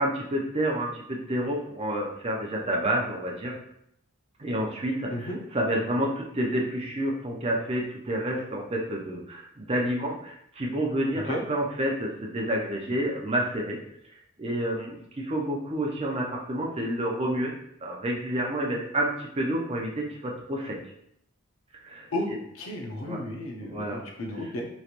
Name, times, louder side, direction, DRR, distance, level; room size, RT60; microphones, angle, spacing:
voice 1, 0.0-3.6 4.4-13.8 14.4-17.5 17.8-20.8 21.8-22.4 23.0-23.2 23.6-24.0 24.4-24.5, right 1 dB, 30° right, -1 dB, 0.5 m, -29 dB
voice 2, 22.5-24.7, left 1 dB, 75° left, 1 dB, 0.6 m, -33 dB
3.1 x 2.9 x 2.5 m, 0.72 s
head